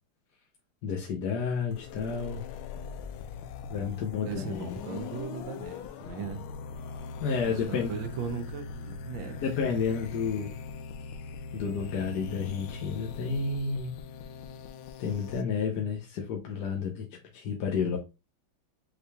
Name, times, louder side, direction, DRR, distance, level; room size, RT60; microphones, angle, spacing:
voice 1, 0.8-2.4 3.7-4.7 7.2-7.9 9.4-10.5 11.5-13.9 15.0-17.1 17.3-18.0, left 5 dB, 60° left, 1.3 m, -31 dB
sound 1, 1.7-15.4, left 5 dB, 90° left, 1.4 m, -41 dB
voice 2, 4.2-6.5 7.4-9.4, right 7 dB, 75° right, 1.4 m, -38 dB
6.7 x 3.0 x 2.2 m
omnidirectional pair, 2.2 m